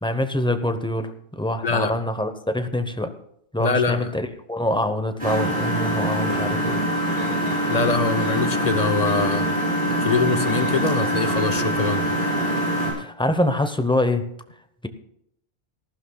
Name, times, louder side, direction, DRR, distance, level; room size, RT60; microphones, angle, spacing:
voice 1, 0.0-3.1 3.5-6.8 13.0-14.3, left 1 dB, 5° left, 8 dB, 0.7 m, -25 dB
voice 2, 3.6-4.1 7.7-9.5 10.0-12.1, left 4 dB, 45° left, 9 dB, 0.7 m, -23 dB
Engine, 5.2-12.9, equal, 60° right, 6.7 m, -24 dB
18.5 x 15.0 x 2.3 m, 0.74 s
omnidirectional pair, 1.1 m